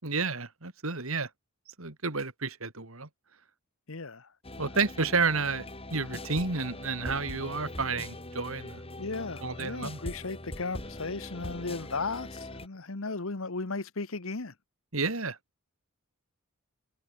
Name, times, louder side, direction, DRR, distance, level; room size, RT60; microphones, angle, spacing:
voice 1, 0.0-1.3 1.8-3.1 4.6-8.8 9.4-10.0 14.9-15.4, right 4 dB, 70° right, 3.0 m, -31 dB
voice 2, 3.9-4.3 9.0-14.5, left 3 dB, 65° left, 1.3 m, -35 dB
sound 1, 4.4-12.7, left 1 dB, 25° left, 5.4 m, -42 dB
head